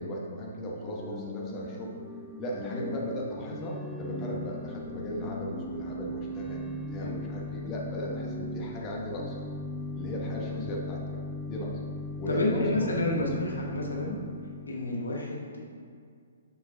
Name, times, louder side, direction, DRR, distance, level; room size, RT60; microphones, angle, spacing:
voice 1, 0.0-1.9 2.4-9.3 9.9-11.2 11.5-11.7 12.2-13.5, equal, 25° left, -3 dB, 1.1 m, -36 dB
Organ / Church bell, 0.8-15.0, left 2 dB, ahead, 0.4 m, -39 dB
voice 2, 12.3-14.2 14.7-15.6, left 2 dB, 80° left, -1 dB, 1.1 m, -30 dB
6.9 x 5.8 x 2.7 m, 2.2 s
figure-of-eight pair, 125°, 0 cm